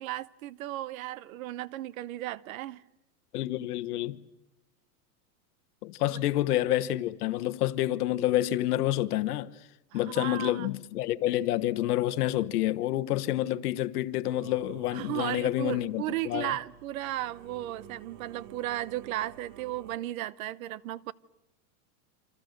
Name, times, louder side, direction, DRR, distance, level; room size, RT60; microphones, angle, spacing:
voice 1, 0.0-2.8 6.0-6.2 9.9-10.7 14.9-21.1, right 14 dB, 60° right, 0.9 m, -35 dB
voice 2, 3.3-4.2 5.8-9.5 9.9-16.5, left 14 dB, 75° left, 1.2 m, -28 dB
Singing / Musical instrument, 14.3-20.0, right 9 dB, 45° right, 1.4 m, -51 dB
28.5 x 26.5 x 6.6 m
supercardioid pair, 170°, 46 cm